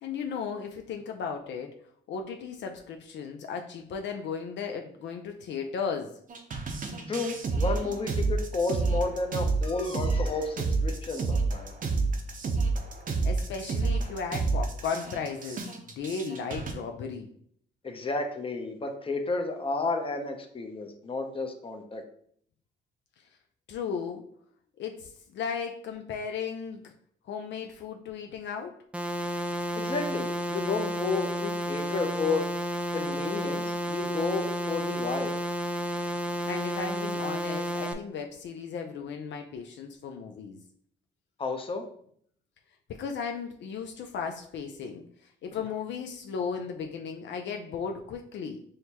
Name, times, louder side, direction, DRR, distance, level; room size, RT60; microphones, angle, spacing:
voice 1, 0.0-6.2 13.2-15.7 16.0-17.3 23.7-24.2 24.8-26.9 27.3-28.8 36.4-40.6 42.9-45.1 45.4-48.6, left 6 dB, 65° left, 4 dB, 0.5 m, -35 dB
sound 1, 6.3-16.7, right 4 dB, 45° right, 0.7 m, -29 dB
voice 2, 7.1-11.7 17.8-22.0 29.7-32.5 32.9-35.3 41.4-41.9, left 3 dB, 25° left, 5 dB, 0.7 m, -32 dB
sound 2, 28.9-37.9, equal, 5° right, 0.4 m, -31 dB
6.3 x 2.2 x 2.8 m, 0.63 s
cardioid pair, 90°, 20 cm